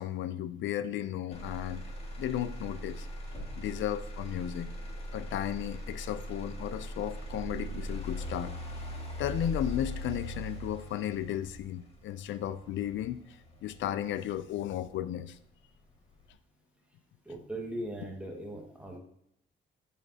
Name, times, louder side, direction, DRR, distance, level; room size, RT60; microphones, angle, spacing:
voice 1, 0.0-1.9 2.2-3.1 3.6-4.7 5.1-8.5 9.2-15.4, left 11 dB, 80° left, 0.5 m, -34 dB
Motor vehicle (road), 1.3-15.3 15.8-16.3, equal, 30° left, 1.9 m, -40 dB
voice 2, 17.3-19.0, right 1 dB, 5° right, 1.8 m, -39 dB
8.4 x 7.0 x 2.8 m
cardioid pair, 95°, 19 cm